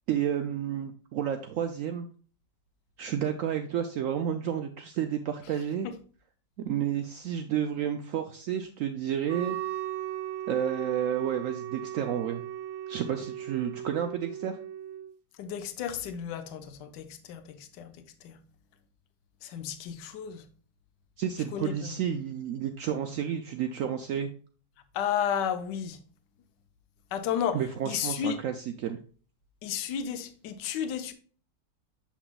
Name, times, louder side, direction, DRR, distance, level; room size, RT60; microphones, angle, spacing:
voice 1, 0.1-2.1 3.0-5.9 6.6-9.6 10.5-12.4 12.9-14.6 21.2-24.3 27.5-29.0, right 9 dB, 85° right, 0.7 m, -31 dB
Wind instrument woodwind instrument, 9.3-15.1, right 12 dB, 65° right, 1.0 m, -37 dB
voice 2, 15.4-17.9 18.2-18.4 19.4-20.4 21.5-22.0 24.9-26.0 27.1-28.4 29.6-31.1, left 8 dB, 75° left, 1.3 m, -33 dB
7.2 x 5.8 x 2.3 m
omnidirectional pair, 1.9 m